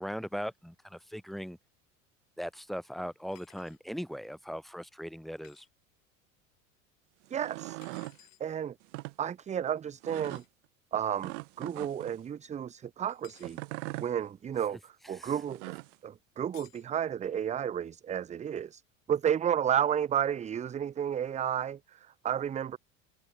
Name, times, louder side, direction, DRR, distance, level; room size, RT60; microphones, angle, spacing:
voice 1, 0.0-1.6 2.4-5.7 15.1-15.3, equal, ahead, 2.8 m, -39 dB
sound 1, 3.3-3.8 5.4-5.7 7.8-8.4 10.2-10.5 13.1-13.6 16.5-16.9, left 19 dB, 70° left, 2.8 m, -58 dB
sound 2, 7.2-8.2 8.8-9.1 10.0-10.4 11.2-12.2 13.4-14.1 15.3-16.0, right 25 dB, 65° right, 0.6 m, -41 dB
voice 2, 7.3-7.8 8.4-8.8 9.2-10.4 10.9-13.6 14.0-15.7 16.0-18.8 19.1-22.8, right 9 dB, 20° right, 0.5 m, -32 dB
open air
hypercardioid pair, 80°, 40 cm